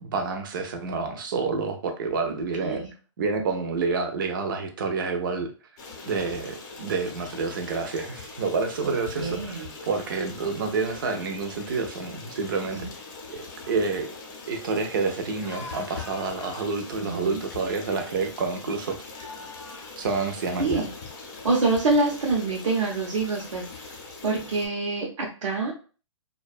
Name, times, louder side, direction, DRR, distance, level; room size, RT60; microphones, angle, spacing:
voice 1, 0.0-2.8 3.2-5.5 6.1-12.9 13.3-14.1 14.5-19.0 20.0-20.8, right 4 dB, 40° right, 5 dB, 0.5 m, -28 dB
voice 2, 2.6-2.9 9.2-9.7 12.7-12.9 17.0-17.4 20.6-20.9 21.4-23.8 24.2-25.7, right 3 dB, 90° right, -2 dB, 0.7 m, -26 dB
Stream, 5.8-24.7, left 4 dB, 35° left, 0.6 m, -42 dB
sound 1, 8.4-9.4 10.2-10.5 10.9-11.3 12.0-12.1 12.4-12.7 13.3-13.6 15.3-16.8 17.8-17.9 19.0-20.6, left 3 dB, 80° left, 0.6 m, -46 dB
2.5 x 2.2 x 2.4 m, 0.37 s
hypercardioid pair, 160°, 16 cm